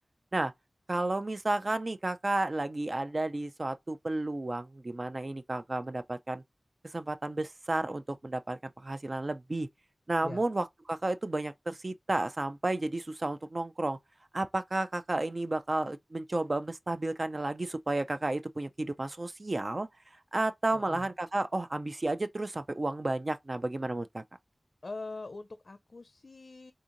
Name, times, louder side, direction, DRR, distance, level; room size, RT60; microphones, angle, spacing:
voice 1, 0.9-6.4 6.8-9.7 10.1-14.0 14.3-19.9 20.3-24.2, right 2 dB, 45° right, 0.4 m, -32 dB
voice 2, 20.7-21.1 24.8-26.7, left 3 dB, 60° left, 0.4 m, -43 dB
3.6 x 2.6 x 2.5 m
wide cardioid pair, 80°, 0 cm